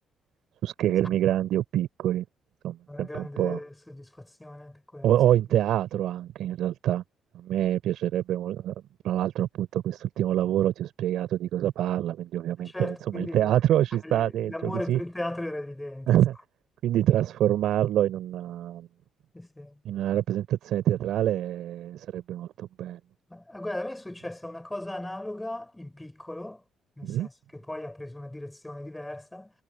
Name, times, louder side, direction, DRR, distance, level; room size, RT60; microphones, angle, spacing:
voice 1, 0.6-2.2 2.6-3.6 5.0-7.0 7.3-8.7 9.0-15.0 16.1-16.3 16.8-18.9 19.8-23.0 27.0-27.3, right 12 dB, 75° right, 4.1 m, -26 dB
voice 2, 2.9-5.2 12.6-16.1 19.3-19.7 23.3-26.6 27.0-29.5, left 1 dB, 10° left, 5.4 m, -37 dB
cardioid pair, 80°, 0 cm